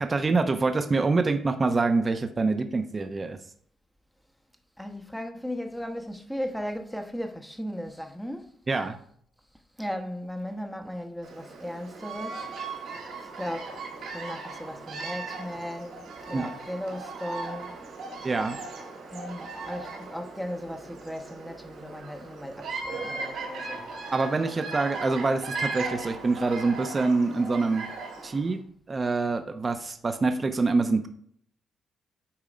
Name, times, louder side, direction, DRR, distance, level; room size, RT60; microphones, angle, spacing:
voice 1, 0.0-3.4 8.7-9.0 16.3-16.5 18.2-18.6 24.1-27.9 28.2-28.6 28.9-31.1, right 3 dB, 30° right, 0.8 m, -25 dB
voice 2, 4.8-8.5 9.8-12.9 13.2-13.7 14.1-17.7 19.1-23.9, equal, 5° left, 1.0 m, -36 dB
Bird vocalization bird call bird song, 11.2-28.5, right 3 dB, 75° right, 3.2 m, -38 dB
8.7 x 3.6 x 5.1 m
cardioid pair, 90°, 0 cm